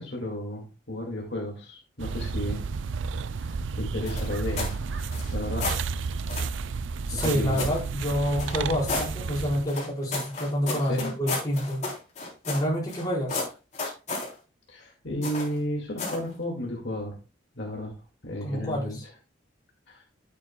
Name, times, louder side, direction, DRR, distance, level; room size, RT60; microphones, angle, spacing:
voice 1, 0.0-2.6 3.4-5.9 7.1-7.6 10.9-11.1 14.7-17.2 17.5-17.9 18.2-19.1 19.9-20.0, left 1 dB, 60° left, 0 dB, 2.1 m, -33 dB
sound 1, 2.0-9.7, right 4 dB, 70° right, 0.4 m, -31 dB
sound 2, 4.1-4.8 5.1-5.8 6.3-6.5 7.2-7.8 8.4-9.1 9.7-13.0 13.3-14.3 15.2-15.6 16.0-16.3, left 3 dB, 35° left, 3.7 m, -32 dB
voice 2, 7.1-11.8 12.5-13.4 18.4-19.0, equal, 20° left, -5 dB, 4.7 m, -28 dB
11.5 x 8.3 x 2.3 m, 0.30 s
head